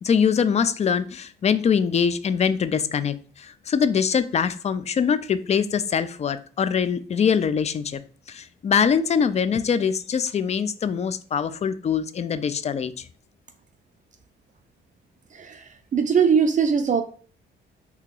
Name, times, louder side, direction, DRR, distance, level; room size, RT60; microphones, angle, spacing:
voice 1, 0.0-8.0 8.3-13.0, left 7 dB, 35° left, 13 dB, 0.4 m, -23 dB
voice 2, 15.3-17.0, right 6 dB, 40° right, 7 dB, 0.4 m, -21 dB
2.8 x 2.8 x 3.7 m, 0.43 s
cardioid pair, 90°, 20 cm